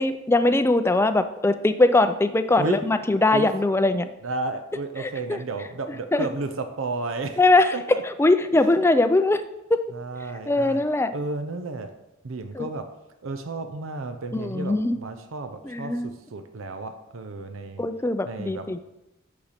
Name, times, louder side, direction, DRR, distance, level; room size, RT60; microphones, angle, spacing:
voice 1, 0.0-4.1 5.0-5.4 6.1-6.3 7.4-9.8 10.5-11.1 12.5-12.7 14.3-15.0 15.6-16.1 17.8-18.8, left 2 dB, 10° left, 11 dB, 0.4 m, -21 dB
voice 2, 4.2-7.4 7.7-8.0 8.5-8.8 9.9-10.8 11.1-11.9 12.2-12.9 13.2-17.8 18.2-18.7, right 3 dB, 80° right, 8 dB, 0.6 m, -32 dB
8.7 x 6.5 x 4.2 m, 0.93 s
head